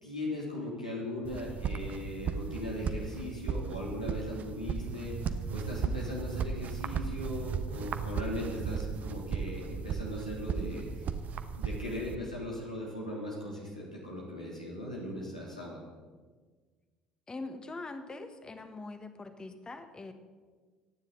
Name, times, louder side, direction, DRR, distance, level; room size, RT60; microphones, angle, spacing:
voice 1, 0.0-10.9 11.6-15.8, left 1 dB, 90° left, -4 dB, 3.2 m, -38 dB
sound 1, 1.2-12.2, right 6 dB, 40° right, 1.0 m, -36 dB
voice 2, 17.3-20.1, left 3 dB, 20° left, 8 dB, 1.6 m, -43 dB
26.0 x 9.9 x 4.1 m, 1.5 s
figure-of-eight pair, 60°, 4 cm